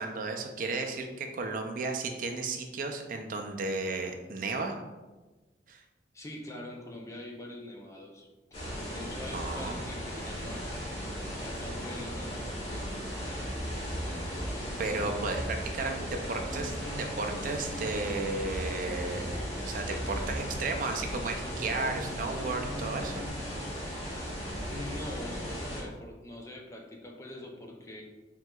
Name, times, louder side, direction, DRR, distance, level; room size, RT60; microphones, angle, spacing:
voice 1, 0.0-4.8 5.7-5.8 9.3-9.8 14.8-23.2, right 3 dB, 45° right, 4 dB, 0.4 m, -34 dB
voice 2, 6.1-8.3 8.9-12.7 24.7-28.0, left 1 dB, 15° left, 1 dB, 0.4 m, -44 dB
sound 1, 8.5-25.8, equal, 35° left, 1.3 m, -37 dB
sound 2, 13.4-14.5 14.9-15.6 16.5-19.5 19.9-20.6 21.4-23.3, equal, 10° right, 1.4 m, -40 dB
4.5 x 3.7 x 2.3 m, 1.2 s
head